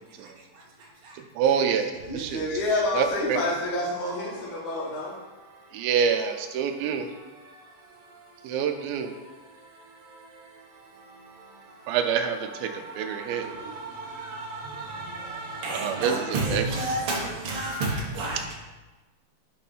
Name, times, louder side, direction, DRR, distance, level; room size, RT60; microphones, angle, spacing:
voice 1, 1.4-2.4 3.0-3.4 5.7-7.1 8.5-9.1 11.9-12.7 13.0-13.4 15.7-16.1 16.5-16.6, right 7 dB, 85° right, 2.5 m, -26 dB
voice 2, 2.1-5.2 16.0-16.5, left 2 dB, 45° left, 1.8 m, -29 dB
voice 3, 15.6-17.2 17.5-17.9 18.2-18.5, right 2 dB, 55° right, 1.7 m, -29 dB
8.0 x 4.2 x 5.5 m
omnidirectional pair, 4.2 m